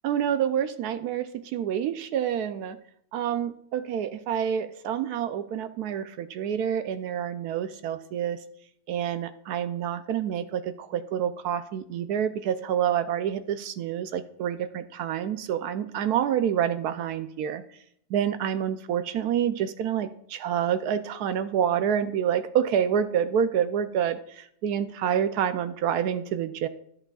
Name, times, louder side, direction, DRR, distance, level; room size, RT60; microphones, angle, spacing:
voice 1, 0.0-2.8 3.1-8.4 8.9-17.6 18.1-26.7, right 9 dB, 75° right, 11 dB, 1.0 m, -28 dB
12.0 x 10.5 x 2.3 m, 0.69 s
omnidirectional pair, 1.8 m